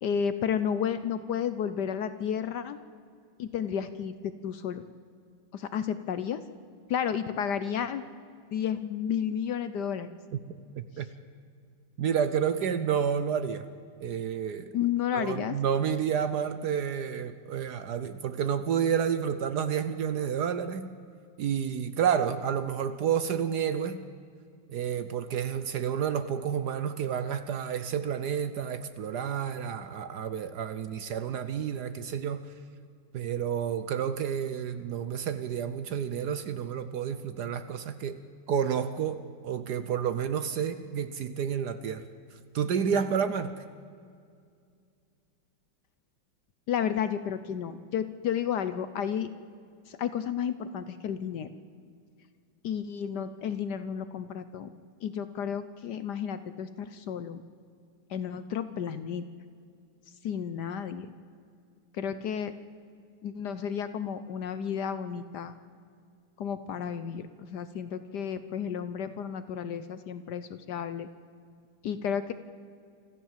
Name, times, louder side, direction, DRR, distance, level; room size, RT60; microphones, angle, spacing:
voice 1, 0.0-2.8 3.4-4.8 5.5-6.4 6.9-8.0 8.5-10.1 14.7-15.6 46.7-49.3 49.9-51.5 52.6-54.7 55.0-57.4 58.1-59.2 60.2-61.1 62.0-62.5 63.2-65.5 66.4-71.1 71.8-72.3, left 8 dB, 65° left, 12 dB, 1.2 m, -32 dB
voice 2, 10.7-11.1 12.0-13.6 14.0-14.7 15.1-20.9 21.4-24.0 24.7-32.4 33.1-38.2 38.5-42.1 42.5-43.5, right 8 dB, 65° right, 11 dB, 1.1 m, -30 dB
25.0 x 14.5 x 7.4 m, 2.3 s
omnidirectional pair, 2.2 m